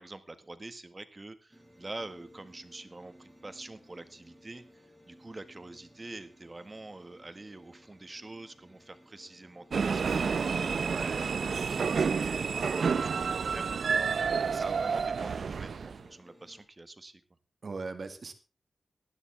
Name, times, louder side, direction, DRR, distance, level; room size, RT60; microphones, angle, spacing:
voice 1, 0.0-11.3 11.7-13.7 14.5-17.2, right 2 dB, 30° right, 11 dB, 1.8 m, -45 dB
sound 1, 1.5-16.7, equal, 5° right, 7.9 m, -58 dB
sound 2, 9.7-16.0, right 5 dB, 75° right, 0.7 m, -29 dB
voice 2, 10.9-11.2 14.5-14.6 17.6-18.3, right 4 dB, 60° right, 8 dB, 2.1 m, -39 dB
18.5 x 12.5 x 3.6 m, 0.32 s
cardioid pair, 70°, 0 cm